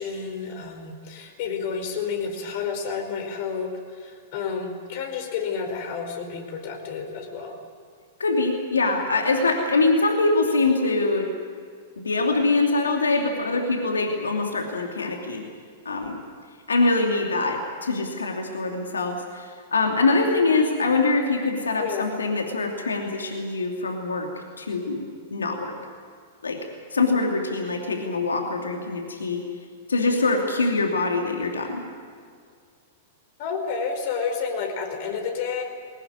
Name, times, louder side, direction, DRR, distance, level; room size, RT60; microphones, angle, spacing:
voice 1, 0.0-7.6 21.8-22.1 33.4-35.6, left 5 dB, 55° left, 4 dB, 5.0 m, -30 dB
voice 2, 8.2-11.3 12.0-15.4 15.8-16.2 16.7-24.3 24.6-25.0 25.3-25.7 26.4-26.6 26.9-29.4 29.9-31.8, left 3 dB, 85° left, 2 dB, 2.7 m, -23 dB
21.5 x 18.5 x 9.6 m, 2.1 s
hypercardioid pair, 105°, 0 cm